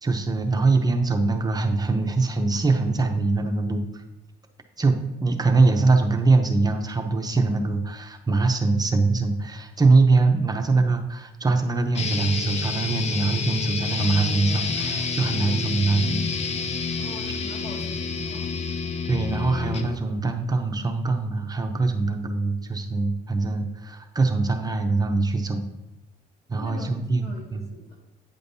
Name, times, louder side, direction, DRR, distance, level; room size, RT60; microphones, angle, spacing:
voice 1, 0.0-4.0 4.8-16.2 17.2-17.4 19.1-25.6 26.5-27.7, right 3 dB, 25° right, 4 dB, 0.6 m, -23 dB
sound 1, 11.9-20.0, left 4 dB, 40° left, 0.6 m, -28 dB
voice 2, 17.0-18.7 26.5-26.9 27.2-28.0, left 2 dB, 70° left, -2 dB, 2.2 m, -43 dB
8.8 x 5.1 x 2.7 m, 0.96 s
cardioid pair, 110°, 17 cm